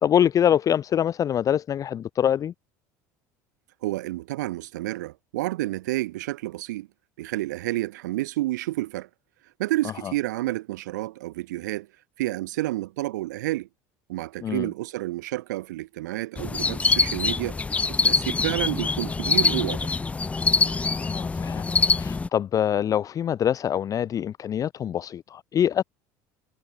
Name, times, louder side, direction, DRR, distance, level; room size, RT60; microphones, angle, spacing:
voice 1, 0.0-2.5 10.0-10.1 14.4-14.7 20.9-21.7 22.0-25.8, left 9 dB, 40° left, 0.7 m, -24 dB
voice 2, 3.8-6.9 7.2-9.1 9.6-11.9 12.2-13.7 14.1-17.6 17.9-19.9, right 17 dB, 80° right, 1.2 m, -30 dB
sound 1, 16.4-22.3, left 4 dB, 15° left, 0.3 m, -24 dB
hypercardioid pair, 80°, 9 cm